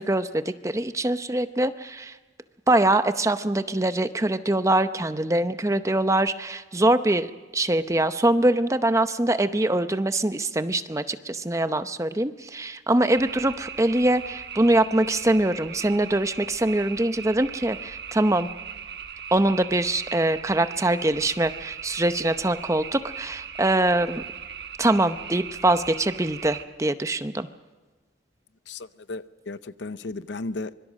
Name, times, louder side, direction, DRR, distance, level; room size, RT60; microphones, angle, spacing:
voice 1, 0.0-2.1 2.7-18.5 19.3-24.2 24.8-27.5, right 1 dB, 15° right, 0.7 m, -23 dB
sound 1, 13.1-26.6, right 7 dB, 60° right, 1.2 m, -39 dB
voice 2, 28.7-30.7, left 3 dB, 80° left, 0.7 m, -35 dB
25.0 x 23.0 x 6.4 m
head